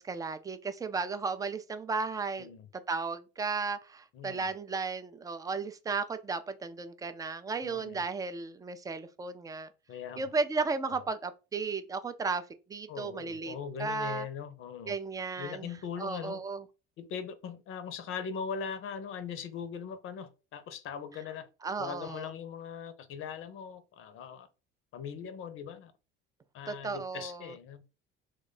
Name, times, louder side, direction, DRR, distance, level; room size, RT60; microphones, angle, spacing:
voice 1, 0.0-2.5 2.9-9.7 10.2-12.4 12.7-14.3 14.9-15.7 16.0-16.6 21.6-22.3 26.7-27.5, right 4 dB, 10° right, 0.3 m, -34 dB
voice 2, 7.6-8.0 9.9-10.3 10.9-11.0 12.9-14.9 15.4-16.4 17.0-21.5 21.8-24.5 24.9-25.9 26.5-27.8, left 7 dB, 45° left, 0.6 m, -40 dB
3.1 x 2.2 x 3.7 m
hypercardioid pair, 65°, 30 cm